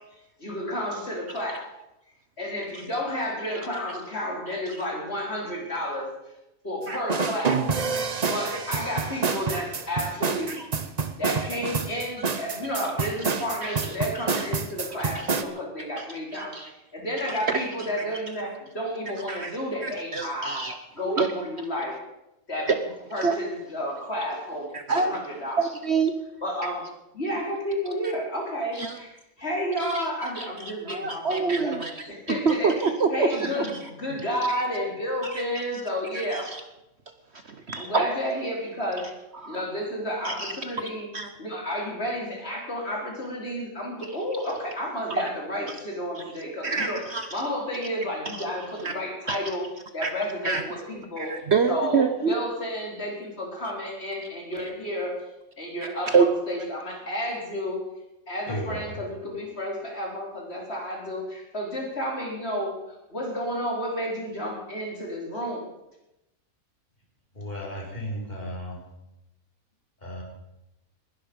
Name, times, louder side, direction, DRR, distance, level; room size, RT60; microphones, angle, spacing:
voice 1, 0.4-1.6 2.4-6.1 6.6-7.7 8.3-10.6 11.2-20.6 20.9-22.0 22.5-22.7 23.1-25.6 26.4-26.9 27.1-32.7 33.1-36.5 37.7-39.1 39.5-41.1 41.4-49.7 49.9-51.3 51.7-55.2 55.6-57.8 58.3-62.8 63.1-65.7, equal, 45° left, -1 dB, 4.4 m, -31 dB
sound 1, 7.1-15.4, right 5 dB, 35° right, 0.8 m, -28 dB
voice 2, 13.6-13.9 16.0-16.1 16.3-16.7 17.5-17.6 19.3-19.5 19.8-20.8 21.0-21.3 23.2-23.3 24.7-25.1 25.6-26.1 28.7-28.9 29.8-30.0 30.4-30.5 30.9-33.7 34.5-34.6 35.2-35.4 36.3-36.6 37.5-38.1 39.4-39.6 40.2-40.5 41.1-41.3 46.2-46.3 46.6-47.3 48.3-48.4 48.8-49.0 49.3-49.4 50.0-50.1 50.4-50.6 51.2-52.3 56.1-56.3, right 5 dB, 50° right, 7 dB, 1.2 m, -26 dB
voice 3, 58.5-58.8 67.3-68.8 70.0-70.2, equal, 30° left, -2 dB, 4.7 m, -34 dB
20.0 x 12.0 x 5.3 m, 0.90 s
omnidirectional pair, 1.5 m